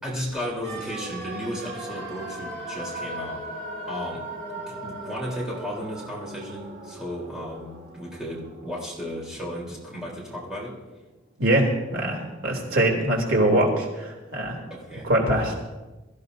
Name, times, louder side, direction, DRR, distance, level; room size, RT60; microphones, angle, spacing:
voice 1, 0.0-3.4 3.9-4.2 4.5-10.7 14.7-15.1 15.5-15.6, equal, 5° right, -5 dB, 3.8 m, -34 dB
sound 1, 0.6-10.6 10.8-10.9, right 1 dB, 50° right, 4.2 m, -38 dB
voice 2, 11.4-14.6 15.0-15.5, right 1 dB, 80° right, -1 dB, 3.3 m, -23 dB
23.0 x 14.5 x 2.8 m, 1.1 s
head